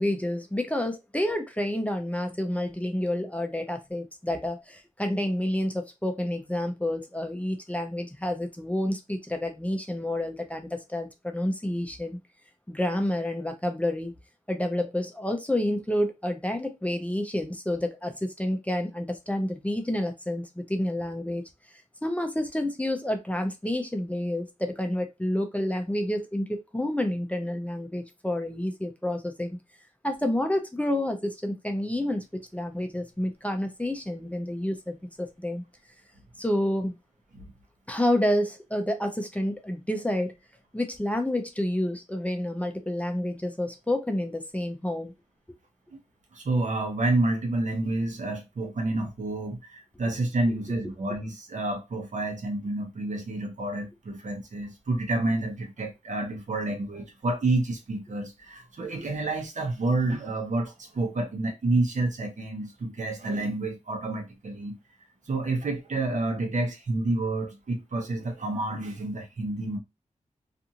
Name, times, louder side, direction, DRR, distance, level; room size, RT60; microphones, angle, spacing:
voice 1, 0.0-12.2 12.7-14.1 14.5-21.4 22.0-29.6 30.0-35.6 36.4-37.0 37.9-40.3 40.7-45.1 50.5-50.6, left 1 dB, 10° left, 0.5 m, -29 dB
voice 2, 46.3-64.8 65.3-69.8, right 2 dB, 70° right, 0.8 m, -29 dB
2.5 x 2.5 x 2.8 m
wide cardioid pair, 90°, 13 cm